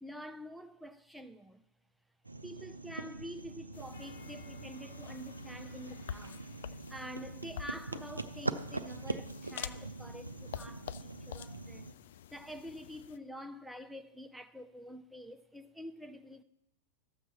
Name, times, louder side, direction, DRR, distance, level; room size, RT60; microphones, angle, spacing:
voice 1, 0.0-1.6 2.4-6.4 6.9-12.0 12.3-16.4, equal, ahead, 0.5 m, -47 dB
sound 1, 2.2-11.9, right 2 dB, 85° right, 0.4 m, -43 dB
sound 2, 3.7-13.2, left 9 dB, 60° left, 0.3 m, -48 dB
sound 3, 3.9-7.1, left 1 dB, 75° left, 1.1 m, -55 dB
13.0 x 7.4 x 4.3 m
figure-of-eight pair, 90°, 0 cm